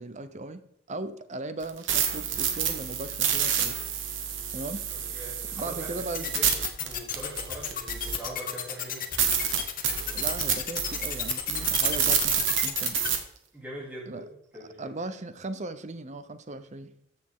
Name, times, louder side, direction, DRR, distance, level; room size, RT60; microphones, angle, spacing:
voice 1, 0.0-3.8 4.5-4.9 5.5-6.3 10.1-13.0 14.1-14.3 14.6-16.9, right 2 dB, 40° right, 11 dB, 0.8 m, -38 dB
sound 1, 1.6-8.4 8.8-8.9 9.2-13.2, right 8 dB, 75° right, 1.4 m, -28 dB
voice 2, 4.9-5.9 6.2-6.5 6.8-9.0 13.5-14.2 14.5-14.9, right 1 dB, 10° right, -6 dB, 3.0 m, -42 dB
sound 2, 6.1-13.1, left 10 dB, 45° left, 1.2 m, -32 dB
14.0 x 6.7 x 3.7 m, 0.73 s
head